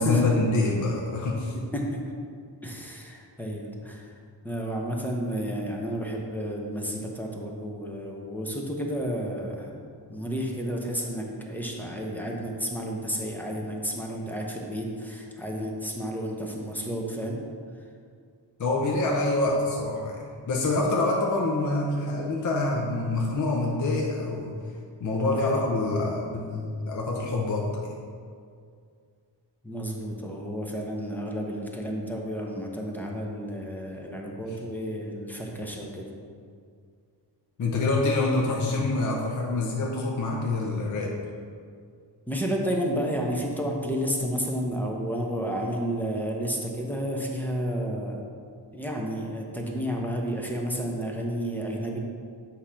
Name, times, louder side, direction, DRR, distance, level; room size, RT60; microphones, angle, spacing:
voice 1, 0.0-1.6 18.6-24.6 25.0-28.0 37.6-41.2, left 2 dB, 40° left, -1 dB, 0.6 m, -26 dB
voice 2, 1.5-2.0 2.6-4.1 4.4-9.8 10.1-17.4 25.3-25.6 29.6-36.1 42.3-48.2 48.7-52.0, equal, 5° left, -1 dB, 0.7 m, -31 dB
7.8 x 2.9 x 5.0 m, 2.2 s
wide cardioid pair, 150°, 44 cm